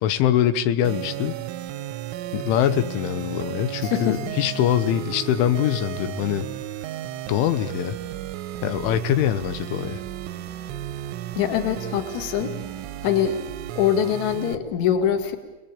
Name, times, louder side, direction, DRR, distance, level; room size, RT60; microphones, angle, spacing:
voice 1, 0.0-1.4 2.3-6.5 7.3-8.0 8.6-10.0, left 11 dB, 85° left, 11 dB, 3.5 m, -23 dB
sound 1, 0.8-14.6, right 12 dB, 85° right, 3.5 m, -34 dB
voice 2, 3.8-4.4 11.3-12.6 13.0-13.4 13.8-15.4, left 9 dB, 50° left, 6 dB, 2.7 m, -23 dB
30.0 x 20.0 x 8.8 m, 1.2 s
omnidirectional pair, 5.4 m